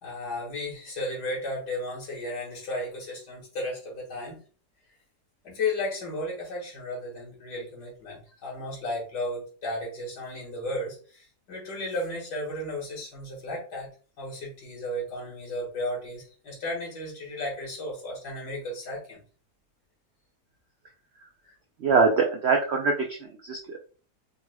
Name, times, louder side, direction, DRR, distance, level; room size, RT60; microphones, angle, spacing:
voice 1, 0.0-4.4 5.4-13.9 14.2-19.2, left 1 dB, 75° left, -3 dB, 2.3 m, -34 dB
voice 2, 21.8-23.8, right 4 dB, 80° right, 1 dB, 0.5 m, -23 dB
5.2 x 3.1 x 2.2 m, 0.39 s
omnidirectional pair, 1.8 m